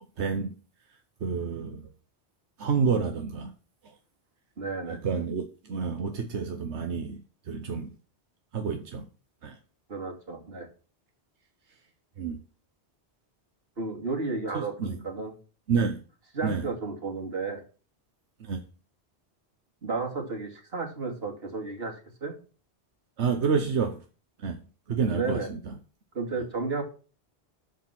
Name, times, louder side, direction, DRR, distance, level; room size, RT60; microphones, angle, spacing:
voice 1, 0.2-0.5 1.2-1.9 2.6-3.5 4.9-7.2 7.5-7.9 8.5-9.1 9.4-9.6 12.2-12.4 14.8-15.0 15.7-16.0 16.4-16.7 18.4-18.6 23.2-24.0 24.4-24.6 24.9-25.7, right 5 dB, 90° right, 1.3 m, -29 dB
voice 2, 4.6-5.0 9.9-10.7 13.8-15.3 16.3-17.6 19.8-21.9 22.2-22.3 25.1-25.5 26.1-26.8, right 3 dB, 65° right, 2.9 m, -32 dB
12.5 x 5.1 x 6.0 m
omnidirectional pair, 1.1 m